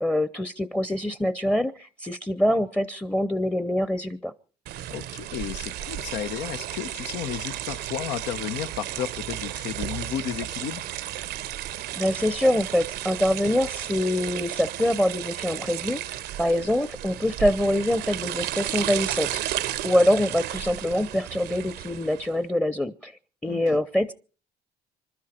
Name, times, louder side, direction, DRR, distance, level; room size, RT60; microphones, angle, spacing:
voice 1, 0.0-4.3 12.0-23.1 23.4-24.1, left 1 dB, 5° left, 0.7 m, -25 dB
sound 1, 4.7-22.3, right 13 dB, 75° right, 0.8 m, -33 dB
voice 2, 4.9-10.8 23.4-23.8, left 10 dB, 85° left, 1.0 m, -33 dB
27.0 x 12.0 x 4.4 m
cardioid pair, 110°, 17 cm